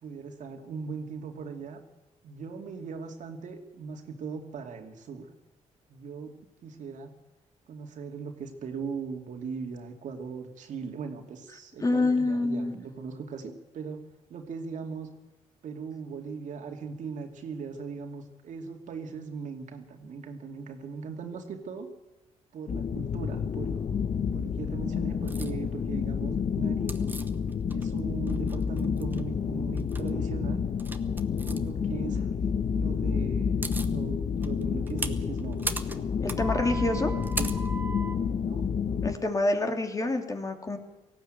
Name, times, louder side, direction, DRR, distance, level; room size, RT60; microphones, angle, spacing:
voice 1, 0.0-1.8 2.2-5.3 5.9-6.3 6.6-7.1 7.7-14.0 14.3-15.1 15.6-21.9 22.5-23.8 24.3-27.1 27.7-30.6 31.4-32.3 32.7-36.0 36.6-37.6 38.5-38.6, right 5 dB, 70° right, 4 dB, 2.6 m, -39 dB
voice 2, 11.8-12.7 36.2-37.1 39.0-40.8, left 2 dB, 25° left, 4 dB, 2.9 m, -27 dB
sound 1, 22.7-39.2, left 6 dB, 55° left, 1.0 m, -29 dB
sound 2, 25.3-25.5 26.9-28.0 28.3-29.2 29.7-30.1 30.8-31.6 33.1-33.2 33.4-33.9 34.4-38.2, right 2 dB, 15° right, 1.4 m, -37 dB
18.5 x 15.0 x 9.2 m, 0.98 s
cardioid pair, 95°, 13 cm